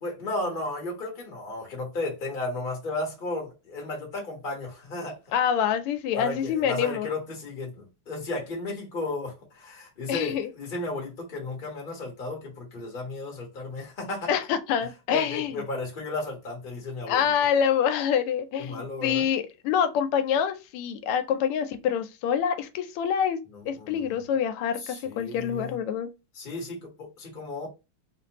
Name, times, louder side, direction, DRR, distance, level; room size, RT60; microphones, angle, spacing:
voice 1, 0.0-5.2 6.1-14.3 15.1-17.2 18.6-19.2 23.7-24.1 24.8-25.8 26.3-27.7, left 2 dB, 30° left, 1.2 m, -34 dB
voice 2, 5.3-7.1 10.1-10.5 14.3-15.6 17.1-23.4 23.7-26.1, left 8 dB, 90° left, 1.5 m, -26 dB
3.6 x 2.6 x 2.8 m
omnidirectional pair, 2.4 m